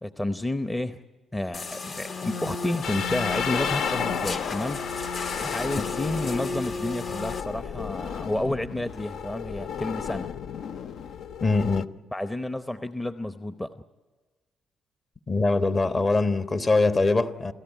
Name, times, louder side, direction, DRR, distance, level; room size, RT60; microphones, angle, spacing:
voice 1, 0.0-1.0 1.3-10.3 12.1-13.8, left 1 dB, 15° left, 0.8 m, -31 dB
sound 1, 1.5-7.4, left 4 dB, 55° left, 1.6 m, -34 dB
sound 2, 2.8-11.8, left 7 dB, 70° left, 0.6 m, -33 dB
voice 2, 11.4-11.9 15.3-17.5, left 3 dB, 35° left, 1.2 m, -22 dB
29.5 x 14.0 x 9.1 m
cardioid pair, 90°, 0 cm